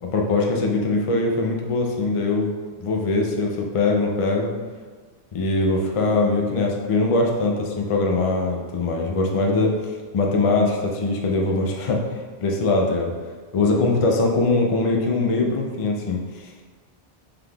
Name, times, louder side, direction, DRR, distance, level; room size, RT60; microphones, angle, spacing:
voice 1, 0.0-2.5 2.8-4.5 5.3-12.0 12.4-13.1 13.5-16.7, left 3 dB, 50° left, 0 dB, 0.4 m, -22 dB
5.7 x 3.4 x 2.3 m, 1.5 s
omnidirectional pair, 1.1 m